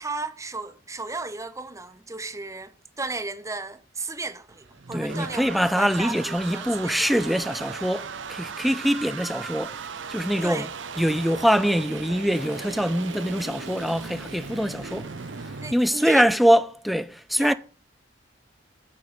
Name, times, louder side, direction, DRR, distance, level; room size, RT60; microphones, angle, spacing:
voice 1, 0.0-6.2 6.5-7.0 10.4-10.7 15.6-16.2 17.4-17.5, right 3 dB, 15° right, 0.9 m, -34 dB
sound 1, 4.5-15.7, right 5 dB, 85° right, 0.8 m, -37 dB
voice 2, 4.9-9.8 10.1-10.7 11.0-15.1 15.4-17.5, equal, ahead, 0.5 m, -23 dB
Toilet flush, 11.3-16.1, left 3 dB, 65° left, 4.8 m, -52 dB
9.7 x 5.4 x 8.0 m
head